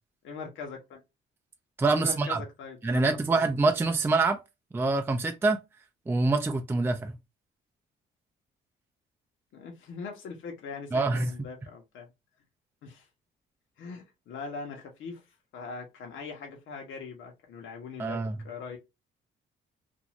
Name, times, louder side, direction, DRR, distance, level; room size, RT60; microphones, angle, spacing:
voice 1, 0.2-1.0 1.9-3.5 9.5-12.1 12.8-13.1 13.8-15.2 15.5-18.2 18.4-18.8, left 4 dB, 75° left, 1.0 m, -41 dB
voice 2, 1.8-2.4 2.8-4.4 4.7-5.6 6.1-7.1 10.9-11.3 18.0-18.3, right 3 dB, 10° right, 0.4 m, -25 dB
2.6 x 2.4 x 3.0 m
cardioid pair, 90°, 20 cm